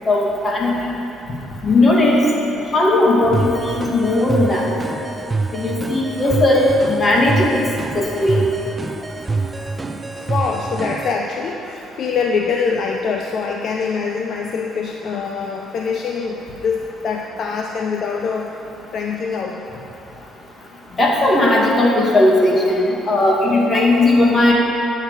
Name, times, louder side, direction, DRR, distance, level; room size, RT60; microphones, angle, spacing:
voice 1, 0.1-0.7 1.6-2.2 2.7-4.7 5.5-7.7 7.9-8.4 21.0-24.5, left 2 dB, 30° left, -2 dB, 2.0 m, -16 dB
sound 1, 3.3-11.1, right 3 dB, 20° right, 0.5 m, -26 dB
voice 2, 6.9-7.2 10.2-18.5 18.9-19.6 22.7-22.9, left 5 dB, 55° left, 1 dB, 0.6 m, -24 dB
9.7 x 8.7 x 4.8 m, 3.0 s
cardioid pair, 95°, 0 cm